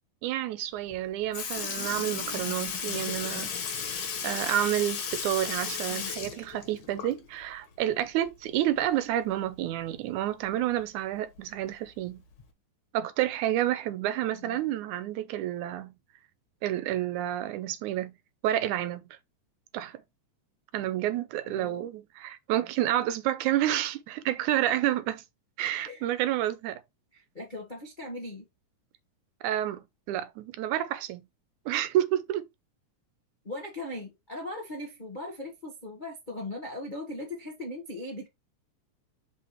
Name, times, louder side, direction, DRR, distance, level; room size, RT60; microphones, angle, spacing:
voice 1, 0.2-3.5 4.2-12.2 12.9-15.9 16.6-18.1 18.4-19.0 19.7-20.0 20.7-25.2 25.6-26.8 29.4-29.8 30.1-31.2 31.7-32.4, right 12 dB, 85° right, 2.1 m, -29 dB
Sink (filling or washing) / Liquid, 0.9-1.0 1.3-7.4 7.8-7.9 9.4-9.5 10.5-10.6 11.4-11.6 12.4-12.5, left 7 dB, 85° left, 3.1 m, -34 dB
voice 2, 14.3-14.7 21.4-21.9 25.8-26.1 27.1-28.5 33.4-38.3, left 1 dB, 50° left, 0.5 m, -39 dB
5.8 x 5.7 x 3.1 m
omnidirectional pair, 3.5 m